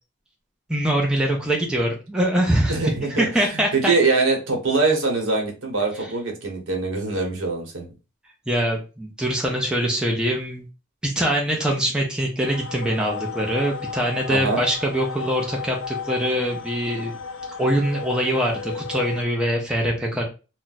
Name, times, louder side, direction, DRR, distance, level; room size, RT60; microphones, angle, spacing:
voice 1, 0.7-3.9 6.0-6.1 8.5-10.6 11.0-17.1 17.6-20.2, equal, 5° right, -1 dB, 0.4 m, -23 dB
voice 2, 2.7-7.9 14.3-14.6, right 3 dB, 65° right, 1 dB, 0.9 m, -23 dB
sound 1, 12.4-19.3, left 6 dB, 65° left, 0.4 m, -34 dB
2.3 x 2.1 x 3.9 m, 0.32 s
head